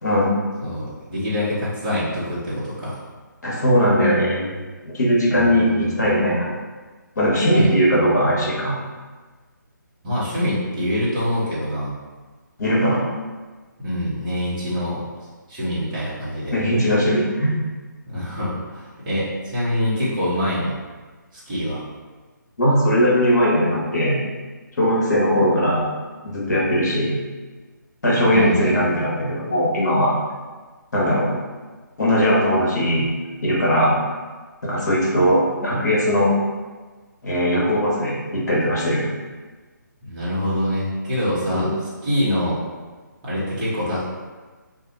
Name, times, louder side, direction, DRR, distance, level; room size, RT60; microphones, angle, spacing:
voice 1, 0.0-0.4 3.4-4.5 4.8-6.5 7.2-8.8 12.6-13.0 16.5-17.6 22.6-24.2 24.8-25.8 26.2-27.2 28.0-30.1 30.9-31.4 32.0-33.0 33.4-34.0 34.6-36.3 37.2-39.0 41.5-41.7, equal, 55° left, -5 dB, 1.2 m, -19 dB
voice 2, 0.6-3.0 5.3-6.0 7.5-7.7 10.0-11.9 13.8-15.0 15.5-16.5 18.1-20.8 21.3-21.8 28.3-28.9 40.0-41.7 42.0-42.6 43.2-44.0, left 1 dB, 25° right, -9 dB, 1.1 m, -25 dB
2.7 x 2.5 x 4.0 m, 1.4 s
figure-of-eight pair, 145°, 11 cm